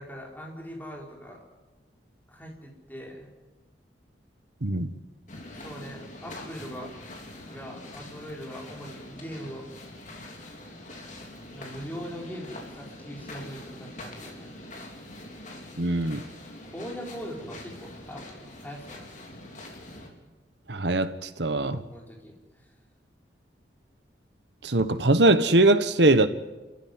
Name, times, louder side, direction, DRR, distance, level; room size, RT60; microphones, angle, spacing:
voice 1, 0.0-1.4 2.3-3.3 5.5-6.9 7.5-9.7 11.5-14.5 16.6-19.2 21.7-22.7, equal, 10° left, 4.7 m, -41 dB
voice 2, 4.6-4.9 15.8-16.2 20.7-21.8 24.6-26.3, right 2 dB, 75° right, 1.3 m, -21 dB
sound 1, 5.3-20.1, left 1 dB, 45° left, 3.9 m, -44 dB
28.0 x 15.0 x 9.7 m
head